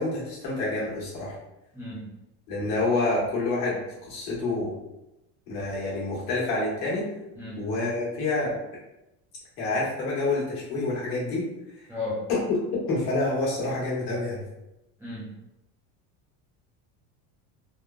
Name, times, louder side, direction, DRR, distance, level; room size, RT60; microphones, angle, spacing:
voice 1, 0.0-1.3 2.5-3.8 4.1-4.7 5.5-7.1 7.6-8.6 9.6-11.5 12.3-12.6 12.9-14.4, left 2 dB, 70° left, -5 dB, 1.3 m, -27 dB
voice 2, 1.7-2.1 7.4-7.6 11.9-12.3 15.0-15.3, left 2 dB, 5° right, -10 dB, 0.4 m, -34 dB
3.5 x 2.0 x 2.3 m, 0.90 s
cardioid pair, 170°, 40 cm